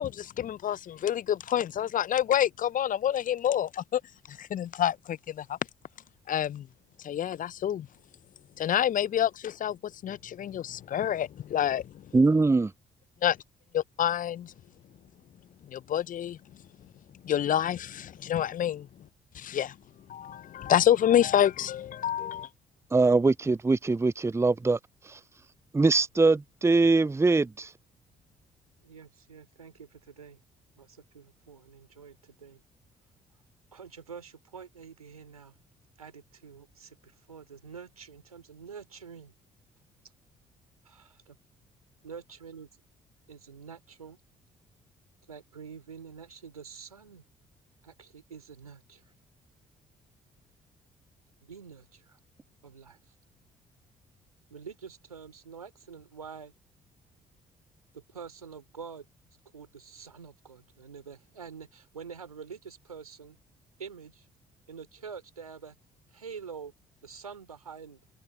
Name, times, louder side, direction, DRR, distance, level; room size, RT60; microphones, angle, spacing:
voice 1, 0.0-4.0 4.3-5.6 6.3-6.7 7.0-7.9 8.6-9.8 10.0-11.9 13.2-13.3 13.7-14.5 15.7-16.4 17.2-18.9 19.3-19.7 20.1-22.5, left 10 dB, 45° left, 1.0 m, -27 dB
voice 2, 12.1-12.7 22.9-24.8 25.1-25.2 25.7-27.7, right 3 dB, 15° right, 0.8 m, -22 dB
voice 3, 28.8-30.4 30.8-32.6 33.7-35.6 36.0-39.3 40.8-41.3 42.0-42.7 43.3-44.2 45.3-47.2 47.8-49.1 51.4-52.2 52.6-53.0 54.5-56.5 57.9-59.0 59.5-63.4 63.8-64.2 64.7-65.7 66.1-66.7 67.0-68.0, right 6 dB, 85° right, 3.5 m, -46 dB
figure-of-eight pair, 45°, 18 cm